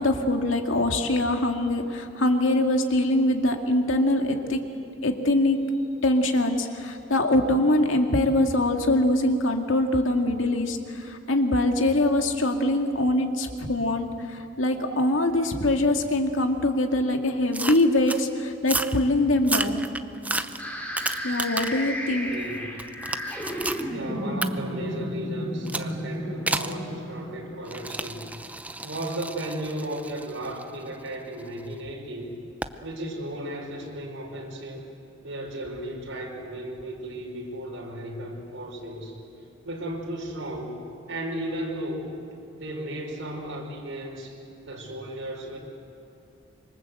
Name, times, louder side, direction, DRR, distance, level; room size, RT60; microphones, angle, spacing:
voice 1, 0.0-4.6 5.0-5.6 6.0-19.9 21.2-22.3, left 1 dB, 90° left, 4 dB, 2.2 m, -23 dB
sound 1, 17.5-18.2 18.6-19.0 19.4-21.9 22.3-23.8 24.4-24.5 25.7-25.9 26.5-26.8 27.6-31.6 32.6-32.8, right 2 dB, 10° right, 0.7 m, -32 dB
sound 2, 20.6-28.5, equal, 10° left, 3.4 m, -33 dB
voice 2, 22.1-22.6 23.9-28.3 28.8-32.3 32.8-34.8 35.2-39.2 39.6-42.1 42.5-44.4 44.6-45.6, right 1 dB, 85° right, -2 dB, 4.9 m, -35 dB
26.0 x 23.5 x 7.9 m, 2.6 s
head